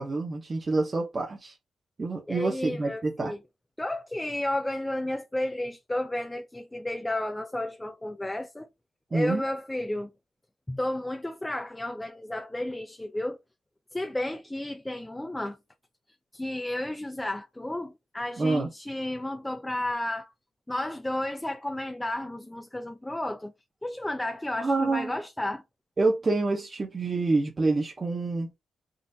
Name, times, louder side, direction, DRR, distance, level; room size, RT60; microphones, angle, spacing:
voice 1, 0.0-1.6 2.0-3.3 9.1-9.4 18.4-18.7 24.6-25.1 26.0-28.5, right 3 dB, 25° right, 0.7 m, -27 dB
voice 2, 2.3-3.4 3.8-8.7 9.1-10.1 10.7-13.4 13.9-15.6 16.3-20.3 20.7-23.5 23.8-25.6, left 1 dB, 10° left, 0.3 m, -32 dB
3.8 x 2.4 x 2.6 m
wide cardioid pair, 150°, 0 cm